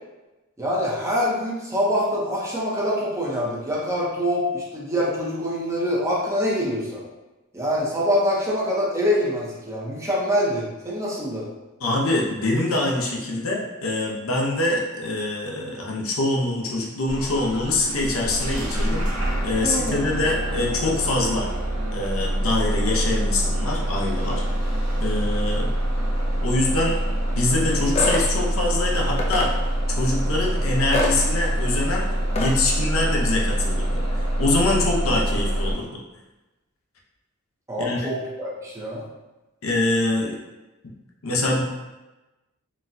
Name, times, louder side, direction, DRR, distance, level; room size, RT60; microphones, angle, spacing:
voice 1, 0.6-7.0 7.5-11.5 19.6-20.0 37.7-39.0, equal, 15° right, -6 dB, 0.6 m, -25 dB
voice 2, 11.8-19.1 19.4-21.5 21.9-24.4 25.0-25.7 26.4-26.9 27.4-29.5 30.0-32.1 32.3-36.0 37.8-38.0 39.6-40.4 41.2-41.6, left 2 dB, 70° left, -1 dB, 0.6 m, -24 dB
Bus / Engine starting, 17.1-35.7, right 1 dB, 85° right, 0.8 m, -25 dB
sound 1, 27.9-28.3 29.2-29.5 30.9-31.2 32.3-32.5, left 2 dB, 30° left, 0.3 m, -24 dB
3.9 x 2.2 x 2.6 m, 1.1 s
head